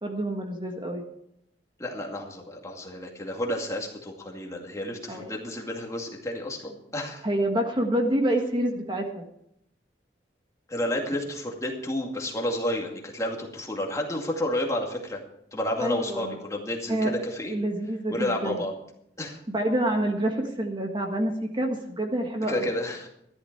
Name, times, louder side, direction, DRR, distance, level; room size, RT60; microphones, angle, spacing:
voice 1, 0.0-1.0 5.1-5.3 7.2-9.2 15.8-16.4 16.9-17.1 17.5-18.6 19.5-22.7, right 1 dB, 25° right, 3 dB, 1.6 m, -27 dB
voice 2, 1.8-7.2 10.7-15.2 15.5-17.5 18.1-18.7 19.2-19.4 22.5-23.1, left 1 dB, 20° left, 0 dB, 2.2 m, -31 dB
14.0 x 11.5 x 4.6 m, 0.76 s
head